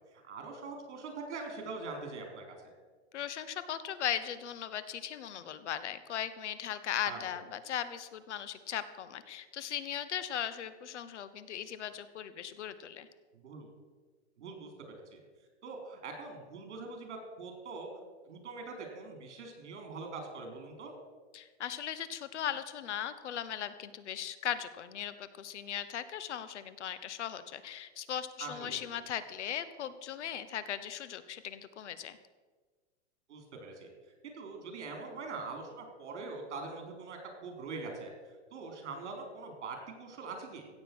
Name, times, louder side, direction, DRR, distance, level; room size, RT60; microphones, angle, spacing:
voice 1, 0.1-2.6 7.1-7.3 13.3-13.7 14.4-15.2 15.6-17.9 18.3-20.9 28.4-28.8 33.3-33.9 34.2-38.1 38.5-40.7, right 3 dB, 75° right, 3 dB, 4.1 m, -43 dB
voice 2, 3.1-13.1 21.3-32.2, left 10 dB, 75° left, 13 dB, 1.1 m, -38 dB
16.0 x 7.6 x 6.1 m, 1.4 s
supercardioid pair, 175°, 35 cm